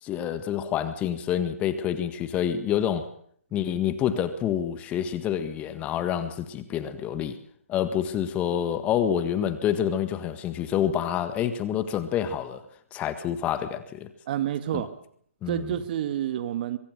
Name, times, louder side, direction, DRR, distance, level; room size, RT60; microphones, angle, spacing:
voice 1, 0.0-3.1 3.5-7.4 7.7-12.6 12.9-14.1 14.7-14.9 15.4-15.7, left 9 dB, 20° left, 11 dB, 1.7 m, -27 dB
voice 2, 14.3-14.9 15.5-16.8, right 11 dB, 40° right, 12 dB, 1.8 m, -28 dB
23.5 x 23.0 x 6.7 m, 0.63 s
figure-of-eight pair, 140°, 8 cm